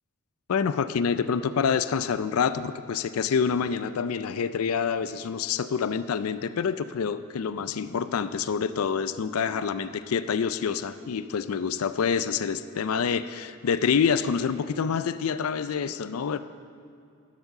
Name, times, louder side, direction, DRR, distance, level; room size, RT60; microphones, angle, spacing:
voice 1, 0.5-16.4, left 6 dB, 90° left, 13 dB, 0.4 m, -27 dB
12.0 x 7.3 x 6.5 m, 2.4 s
head